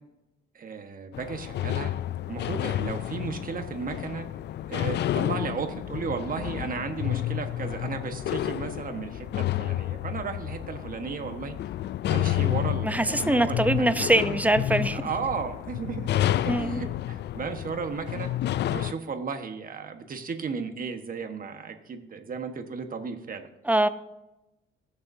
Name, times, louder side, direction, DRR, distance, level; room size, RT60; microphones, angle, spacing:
voice 1, 0.5-1.9 2.3-4.3 4.7-11.6 12.1-14.1 14.9-16.1 16.4-18.3 18.7-23.5, right 5 dB, 45° right, 6 dB, 1.4 m, -34 dB
sound 1, 1.1-18.9, left 13 dB, 60° left, 0.4 m, -30 dB
voice 2, 12.8-15.0 16.5-16.8 23.7-23.9, right 1 dB, 5° right, 12 dB, 0.7 m, -23 dB
20.5 x 6.9 x 2.7 m, 0.97 s
cardioid pair, 90°, 20 cm